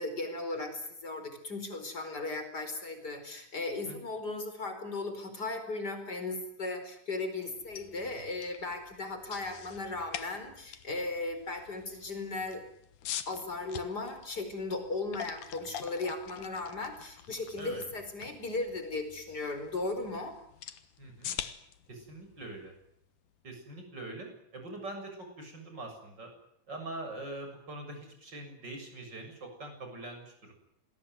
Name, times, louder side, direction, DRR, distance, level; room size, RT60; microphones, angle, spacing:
voice 1, 0.0-12.6 13.3-20.3, left 2 dB, 30° left, 7 dB, 5.2 m, -36 dB
sound 1, 7.5-23.5, left 10 dB, 75° left, 2.9 m, -46 dB
voice 2, 21.0-21.4 21.9-22.7 23.4-26.3 26.7-30.5, right 2 dB, 30° right, 4 dB, 7.7 m, -43 dB
27.5 x 21.0 x 9.5 m, 0.73 s
omnidirectional pair, 3.6 m